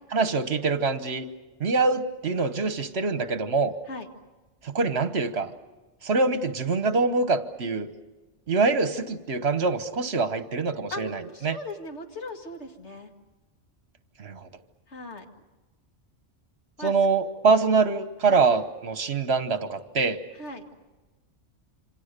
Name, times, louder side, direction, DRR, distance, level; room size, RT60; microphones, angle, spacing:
voice 1, 0.1-1.3 1.6-3.7 4.6-5.5 6.0-7.9 8.5-11.6 14.2-14.5 16.8-20.2, right 4 dB, 60° right, 10 dB, 1.4 m, -24 dB
voice 2, 10.9-13.1 14.9-15.2 16.8-17.0 18.2-18.4 20.3-20.7, left 2 dB, 70° left, 4 dB, 2.3 m, -38 dB
27.5 x 26.0 x 6.7 m, 1.2 s
omnidirectional pair, 1.2 m